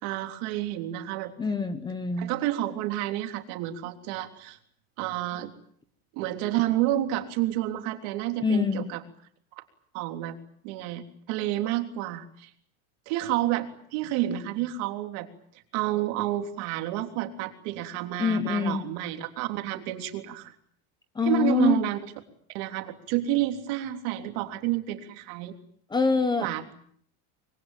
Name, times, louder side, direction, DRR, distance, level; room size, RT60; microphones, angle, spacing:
voice 1, 0.0-1.3 2.2-4.6 5.0-5.5 6.1-9.0 9.6-9.7 9.9-10.4 10.6-12.5 13.1-15.3 15.7-20.5 21.2-22.1 22.5-25.6 26.4-26.6, right 14 dB, 55° right, 6 dB, 3.5 m, -29 dB
voice 2, 1.4-2.3 8.4-8.9 18.2-18.8 21.1-21.8 25.9-26.5, left 4 dB, 10° left, 10 dB, 1.2 m, -25 dB
25.5 x 23.0 x 9.2 m, 0.63 s
cardioid pair, 180°, 44 cm